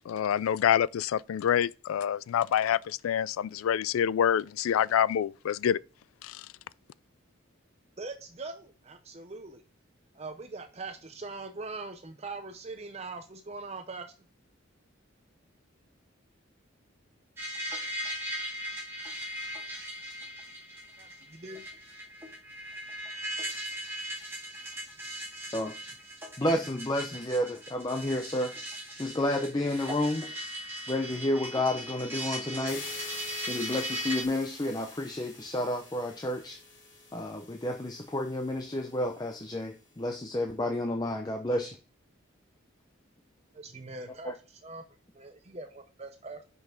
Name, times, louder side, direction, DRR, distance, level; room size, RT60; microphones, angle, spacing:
voice 1, 0.1-5.8 6.2-6.4, left 9 dB, 85° left, 0.3 m, -27 dB
voice 2, 8.0-9.6 10.1-14.1 21.0-21.6 43.5-44.8 45.1-46.4, right 3 dB, 30° right, 0.6 m, -42 dB
sound 1, 17.4-34.2, right 1 dB, 10° right, 1.9 m, -39 dB
voice 3, 26.4-28.5 29.0-30.3 30.9-32.8 33.5-36.6 37.1-41.8 44.2-44.3, left 1 dB, 20° left, 0.6 m, -30 dB
sound 2, 32.7-39.5, left 3 dB, 60° left, 3.1 m, -47 dB
5.8 x 5.4 x 5.7 m
head